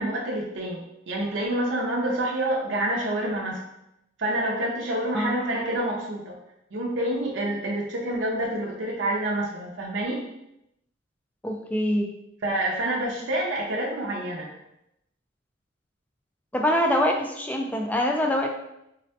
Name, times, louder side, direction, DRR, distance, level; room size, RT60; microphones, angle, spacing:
voice 1, 0.0-3.6 4.2-6.2 6.7-10.2 12.4-14.5, right 1 dB, 75° right, -3 dB, 0.5 m, -27 dB
voice 2, 11.4-12.1 16.5-18.5, left 1 dB, 10° left, 2 dB, 0.3 m, -24 dB
3.9 x 2.1 x 2.8 m, 0.83 s
head